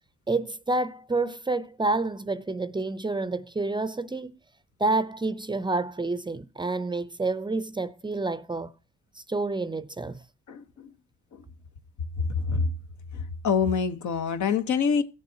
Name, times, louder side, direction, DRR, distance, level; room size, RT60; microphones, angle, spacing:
voice 1, 0.3-4.4 4.8-8.7 9.2-10.2, right 3 dB, 15° right, 0.5 m, -28 dB
voice 2, 12.3-12.7 13.4-15.0, left 6 dB, 70° left, 1.0 m, -25 dB
17.5 x 7.2 x 2.7 m
cardioid pair, 90°, 30 cm